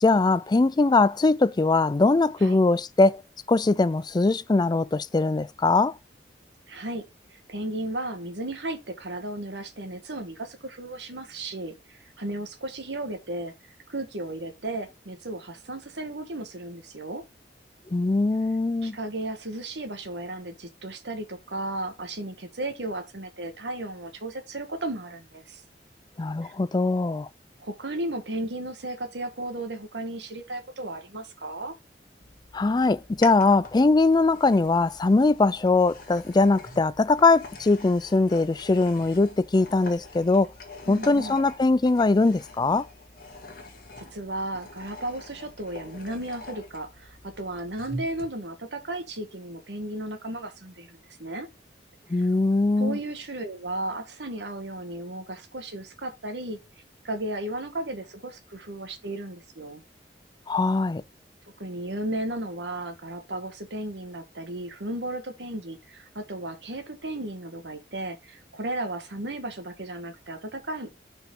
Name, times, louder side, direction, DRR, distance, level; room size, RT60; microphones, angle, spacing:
voice 1, 0.0-3.2 3.5-6.0 17.9-19.0 26.2-27.3 32.5-40.5 40.9-42.9 52.1-53.0 60.5-61.0, left 3 dB, 25° left, 0.4 m, -21 dB
voice 2, 6.7-7.0 7.3-13.5 13.9-17.2 18.8-25.6 26.4-26.5 27.6-31.7 40.9-41.4 43.9-51.5 52.2-52.3 52.7-56.6 57.0-59.8 61.6-70.9, right 1 dB, 80° right, 1.6 m, -34 dB
sound 1, 32.2-48.3, left 2 dB, 55° left, 2.1 m, -44 dB
6.1 x 5.1 x 4.7 m
head